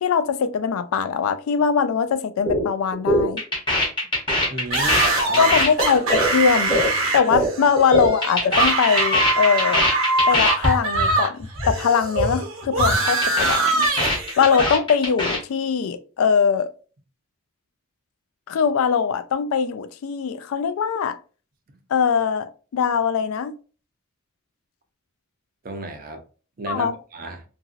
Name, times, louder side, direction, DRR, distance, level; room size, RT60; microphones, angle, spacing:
voice 1, 0.0-3.4 5.4-6.8 7.1-9.9 10.3-13.9 14.4-16.7 18.5-21.2 21.9-23.5 26.7-26.9, left 6 dB, 70° left, 0.3 m, -21 dB
sound 1, 2.5-2.7 2.9-7.5 7.8-10.7 10.9-11.1 11.4-11.8 12.0-12.3 12.6-15.4, left 1 dB, 20° left, 0.8 m, -22 dB
voice 2, 4.5-5.5 25.6-26.2 26.6-27.4, right 2 dB, 40° right, 0.5 m, -32 dB
sound 2, 4.7-11.3 11.6-14.8, right 3 dB, 65° right, 0.9 m, -23 dB
2.8 x 2.6 x 2.4 m
head